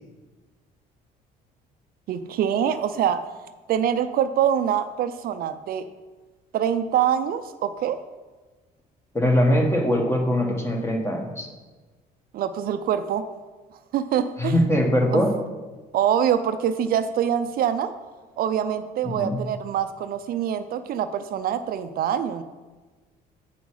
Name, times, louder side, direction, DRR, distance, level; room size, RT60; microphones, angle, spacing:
voice 1, 2.1-3.2 3.7-5.9 6.5-8.0 12.3-13.2 13.9-14.5 15.1-15.2 15.9-17.9 18.4-22.4, right 9 dB, 60° right, 10 dB, 0.5 m, -24 dB
voice 2, 9.1-11.5 14.4-15.3 19.0-19.4, equal, 15° left, 2 dB, 1.4 m, -22 dB
8.4 x 5.3 x 4.8 m, 1.3 s
cardioid pair, 110°, 17 cm